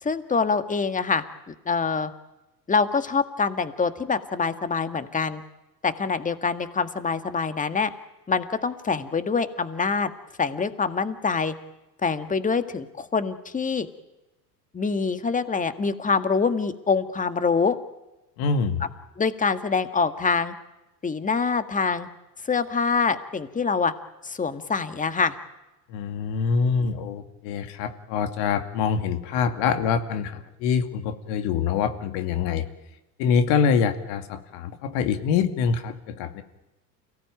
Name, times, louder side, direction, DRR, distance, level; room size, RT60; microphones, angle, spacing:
voice 1, 0.0-2.1 2.7-5.4 5.8-7.9 8.3-10.1 10.4-11.5 12.0-13.9 14.7-17.8 19.2-20.5 21.0-22.1 22.4-23.9 24.2-25.4, left 5 dB, 15° left, 10 dB, 1.9 m, -25 dB
voice 2, 18.4-18.8 25.9-32.6 33.2-36.4, left 6 dB, 55° left, 8 dB, 2.6 m, -25 dB
29.0 x 17.5 x 9.1 m, 1.0 s
hypercardioid pair, 85°, 50 cm